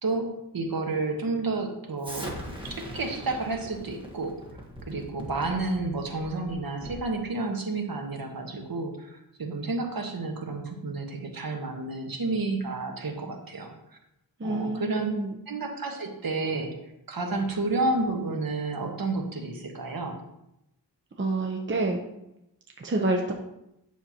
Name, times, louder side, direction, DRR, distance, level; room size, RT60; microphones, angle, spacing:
voice 1, 0.0-2.4 2.6-4.4 4.8-13.7 14.4-15.1 15.5-16.7 17.1-20.2, right 3 dB, 55° right, 2 dB, 1.3 m, -30 dB
Explosion, 2.0-7.1, equal, 10° right, 1.3 m, -41 dB
voice 2, 14.4-15.4 21.2-22.0 22.8-23.3, right 2 dB, 25° right, 1 dB, 0.7 m, -28 dB
9.4 x 6.6 x 2.9 m, 0.86 s
wide cardioid pair, 145°, 43 cm